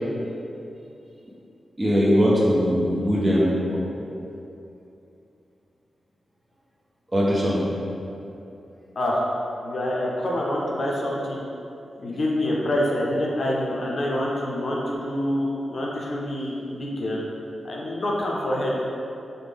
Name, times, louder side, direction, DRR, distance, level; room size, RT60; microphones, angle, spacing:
voice 1, 1.8-3.8 7.1-7.6, equal, 25° right, -5 dB, 0.7 m, -20 dB
voice 2, 9.6-11.4 12.0-17.2 17.6-18.8, left 1 dB, 60° left, -3 dB, 0.5 m, -26 dB
3.5 x 2.1 x 3.4 m, 2.8 s
cardioid pair, 70°, 0 cm